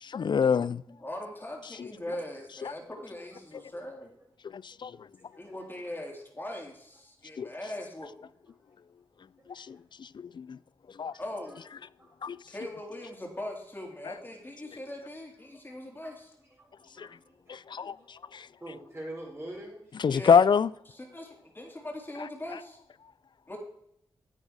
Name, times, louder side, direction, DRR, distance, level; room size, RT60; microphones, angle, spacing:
voice 1, 0.0-0.8 2.6-2.7 4.5-4.9 7.4-7.5 9.5-10.6 11.0-11.1 12.2-12.4 17.0-17.1 17.5-18.0 18.3-18.5 20.0-20.7, left 6 dB, 55° left, 0.4 m, -26 dB
voice 2, 0.9-4.1 5.4-8.1 11.2-11.6 12.5-16.3 20.1-20.4 20.9-22.8 23.5-23.6, left 1 dB, 20° left, 3.6 m, -40 dB
voice 3, 4.6-5.4 9.5-9.6 11.1-11.2 12.0-12.3 15.6-16.1 16.6-18.1 18.6-20.2, right 1 dB, 20° right, 4.5 m, -46 dB
9.6 x 8.6 x 4.9 m
cardioid pair, 50°, 9 cm